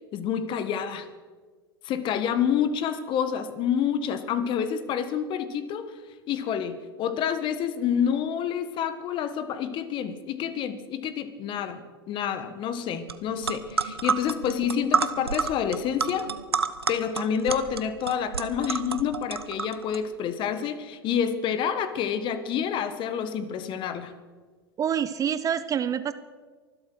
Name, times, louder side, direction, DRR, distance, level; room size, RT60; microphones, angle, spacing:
voice 1, 0.1-1.1 1.8-5.9 6.3-16.3 16.9-24.1, left 8 dB, 40° left, 12 dB, 1.4 m, -28 dB
sound 1, 13.1-13.2 13.4-20.0, right 5 dB, 90° right, 0.8 m, -29 dB
voice 2, 24.8-26.1, right 8 dB, 25° right, 13 dB, 0.7 m, -26 dB
24.0 x 8.1 x 6.3 m, 1.4 s
figure-of-eight pair, 90°, 13 cm